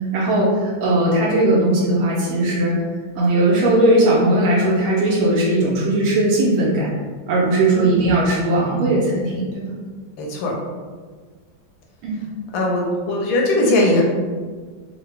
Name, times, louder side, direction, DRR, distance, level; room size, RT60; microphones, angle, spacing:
voice 1, 0.1-2.8 3.1-6.9 7.3-9.7 12.0-12.3, right 1 dB, 85° right, -5 dB, 1.4 m, -18 dB
voice 2, 7.7-8.1 10.2-10.5 12.5-14.0, left 1 dB, 75° left, -1 dB, 1.2 m, -19 dB
3.8 x 2.0 x 3.2 m, 1.5 s
omnidirectional pair, 2.2 m